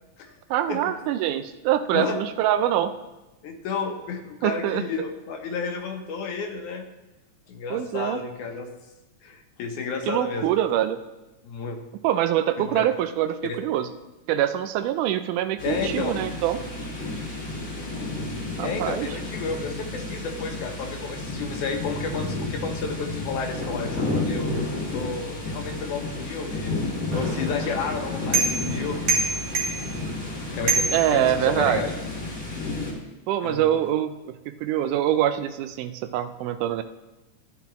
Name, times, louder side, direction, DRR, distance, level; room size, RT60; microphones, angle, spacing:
voice 1, 0.5-2.9 4.4-4.8 7.7-8.2 10.1-11.0 12.0-13.9 14.3-16.6 18.6-19.1 30.9-31.8 33.3-34.2 34.5-36.8, right 11 dB, 80° right, 11 dB, 2.0 m, -24 dB
voice 2, 3.4-6.8 7.5-8.7 9.2-10.5 11.4-11.8 12.6-12.9 13.4-13.6 15.6-16.2 18.6-24.5 24.9-26.7 27.1-29.1 30.5-31.9 33.4-33.8, left 5 dB, 75° left, 4 dB, 2.3 m, -31 dB
sound 1, 15.6-32.9, left 2 dB, 30° left, 2.1 m, -31 dB
sound 2, 27.1-31.8, right 3 dB, 60° right, 2.1 m, -28 dB
13.5 x 9.1 x 3.1 m, 1.0 s
omnidirectional pair, 3.7 m